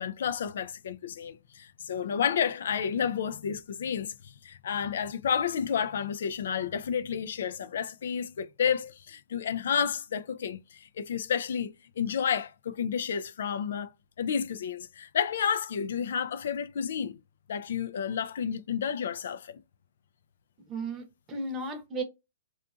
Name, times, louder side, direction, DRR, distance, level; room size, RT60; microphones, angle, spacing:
voice 1, 0.0-13.9 14.2-17.2 17.5-19.6, left 7 dB, 75° left, 0.3 m, -31 dB
voice 2, 20.7-22.0, right 2 dB, 25° right, 0.8 m, -35 dB
2.7 x 2.4 x 2.3 m
hypercardioid pair, 140°, 0 cm